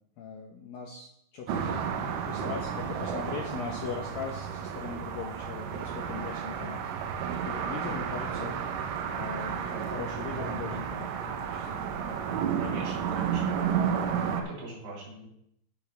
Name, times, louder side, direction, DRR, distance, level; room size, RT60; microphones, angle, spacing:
voice 1, 0.2-6.9 7.2-8.6 9.1-11.7, left 6 dB, 75° left, -1 dB, 2.2 m, -40 dB
sound 1, 1.5-14.4, right 7 dB, 90° right, 3.5 m, -32 dB
voice 2, 3.1-3.6 12.6-13.7 14.5-15.3, right 2 dB, 70° right, -5 dB, 5.9 m, -42 dB
15.5 x 6.3 x 3.4 m, 0.72 s
omnidirectional pair, 5.5 m